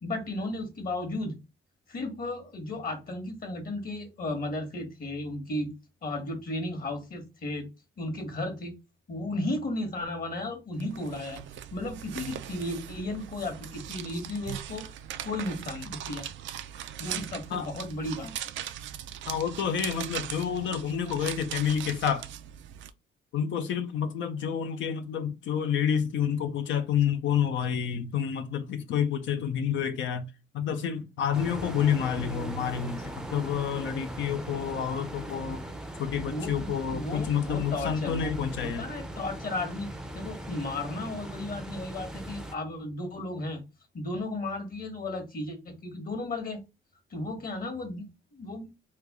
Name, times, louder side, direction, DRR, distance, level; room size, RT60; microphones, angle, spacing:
voice 1, 0.0-1.4 1.9-5.7 6.0-7.7 8.0-8.8 9.1-11.4 11.7-14.8 15.2-16.3 17.0-18.3 36.3-38.3 38.6-43.6 43.9-46.6 47.1-48.7, left 2 dB, 45° left, 1.3 m, -34 dB
sound 1, 10.8-22.9, right 11 dB, 75° right, 0.4 m, -40 dB
voice 2, 19.3-22.3 23.3-35.6 36.0-38.9, left 8 dB, 70° left, 0.6 m, -29 dB
sound 2, 31.3-42.5, right 1 dB, 5° right, 0.5 m, -39 dB
3.2 x 2.3 x 3.6 m
cardioid pair, 90°, 20 cm